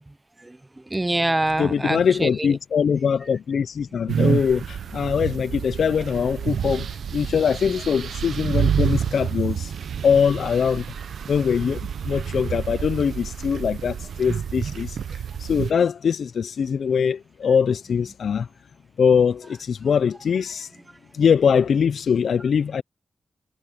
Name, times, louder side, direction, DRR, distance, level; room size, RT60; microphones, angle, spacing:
voice 1, 0.1-2.6 7.7-7.8 20.9-21.0, right 2 dB, 20° right, 0.4 m, -26 dB
voice 2, 1.6-9.7 10.0-10.9 11.3-15.0 15.4-18.5 19.0-20.7 21.1-22.8, left 7 dB, 80° left, 0.4 m, -22 dB
sound 1, 4.1-15.7, right 7 dB, 90° right, 0.6 m, -28 dB
cardioid pair, 70°, 0 cm